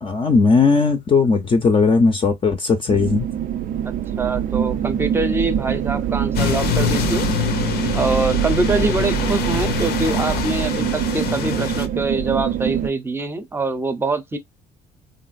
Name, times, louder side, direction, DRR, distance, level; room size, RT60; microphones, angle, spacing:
voice 1, 0.0-3.3, left 4 dB, 30° left, 0.6 m, -17 dB
sound 1, 2.9-12.9, right 10 dB, 55° right, 0.4 m, -24 dB
voice 2, 3.8-7.3 7.9-14.4, right 3 dB, 15° right, 0.6 m, -24 dB
sound 2, 6.3-11.9, left 10 dB, 70° left, 0.6 m, -25 dB
3.1 x 2.5 x 2.4 m
cardioid pair, 110°, 17 cm